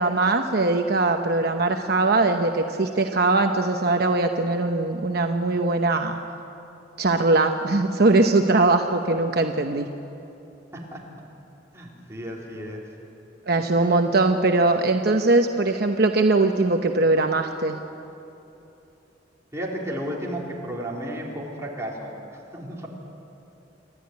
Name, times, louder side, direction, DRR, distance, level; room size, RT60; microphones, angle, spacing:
voice 1, 0.0-6.2 7.0-9.9 13.5-17.8, right 2 dB, 60° right, 4 dB, 0.9 m, -21 dB
voice 2, 11.7-12.9 19.5-22.9, equal, 15° right, -3 dB, 3.9 m, -33 dB
28.0 x 12.5 x 9.6 m, 2.9 s
head